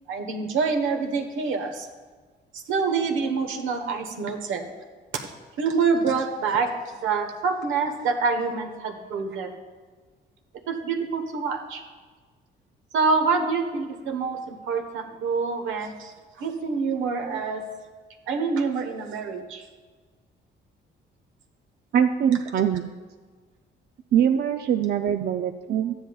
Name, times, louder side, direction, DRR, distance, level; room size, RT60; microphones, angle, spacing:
voice 1, 0.1-1.9 2.5-4.7 5.1-5.3 5.6-9.6 10.7-11.8 12.9-17.6 18.3-19.6, right 4 dB, 80° right, 4 dB, 1.2 m, -26 dB
voice 2, 21.9-22.9 24.1-26.0, right 9 dB, 55° right, 6 dB, 0.4 m, -23 dB
13.0 x 10.0 x 2.3 m, 1.4 s
cardioid pair, 90°, 20 cm